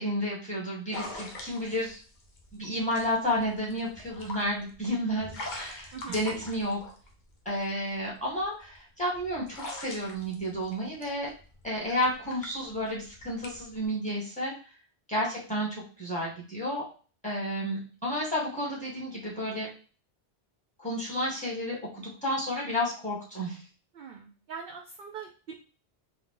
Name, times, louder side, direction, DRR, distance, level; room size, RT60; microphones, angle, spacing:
voice 1, 0.0-2.0 2.5-6.8 7.5-11.3 11.6-14.5 15.1-16.8 17.2-19.7 20.8-23.6, equal, 5° left, -5 dB, 1.8 m, -31 dB
sound 1, 0.9-7.6 8.2-13.8, left 2 dB, 50° left, 0.8 m, -43 dB
voice 2, 23.9-25.6, right 6 dB, 60° right, 3 dB, 0.7 m, -42 dB
3.9 x 2.6 x 3.7 m, 0.37 s
omnidirectional pair, 1.2 m